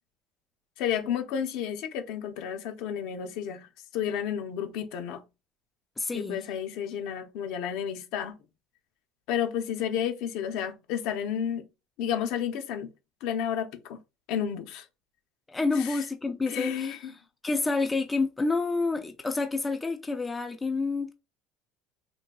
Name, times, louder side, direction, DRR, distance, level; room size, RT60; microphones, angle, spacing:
voice 1, 0.8-3.7 3.9-5.2 6.1-8.3 9.3-11.6 12.0-12.9 13.2-14.0 14.3-14.9 15.8-16.0 16.5-17.1, left 9 dB, 70° left, 0.7 m, -31 dB
voice 2, 6.0-6.4 15.5-17.0 17.4-21.1, left 3 dB, 10° left, 0.4 m, -28 dB
3.7 x 2.8 x 2.2 m
cardioid pair, 145°, 0 cm